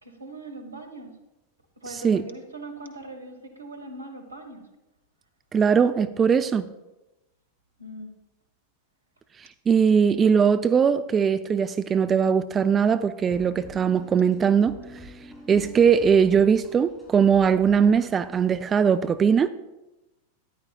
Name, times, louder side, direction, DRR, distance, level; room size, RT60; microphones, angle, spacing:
voice 1, 0.0-1.2 1.8-4.7 7.8-8.1, right 2 dB, 80° right, 6 dB, 1.4 m, -40 dB
voice 2, 5.5-6.7 9.4-15.1 15.5-19.5, right 7 dB, 20° right, 12 dB, 0.3 m, -20 dB
sound 1, 13.3-18.6, equal, ahead, 2.8 m, -47 dB
13.5 x 10.5 x 2.4 m, 1.0 s
figure-of-eight pair, 90°, 0 cm